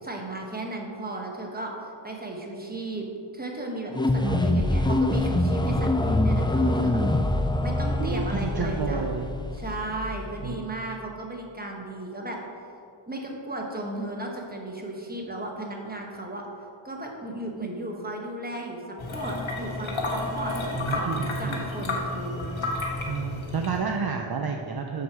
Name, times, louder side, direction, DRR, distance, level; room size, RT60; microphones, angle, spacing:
voice 1, 0.0-3.0 3.3-7.0 7.6-9.1 9.5-12.4 13.1-16.5 16.8-22.5, right 2 dB, 20° right, 0 dB, 1.2 m, -35 dB
sound 1, 3.9-10.6, left 1 dB, 10° left, 0.3 m, -25 dB
voice 2, 4.2-4.8 8.0-9.3 10.4-10.6 20.8-21.7 23.0-25.0, right 5 dB, 50° right, 2 dB, 0.5 m, -31 dB
sound 2, 19.0-24.0, left 2 dB, 70° left, 1.2 m, -31 dB
6.0 x 6.0 x 4.7 m, 2.5 s
wide cardioid pair, 50°, 49 cm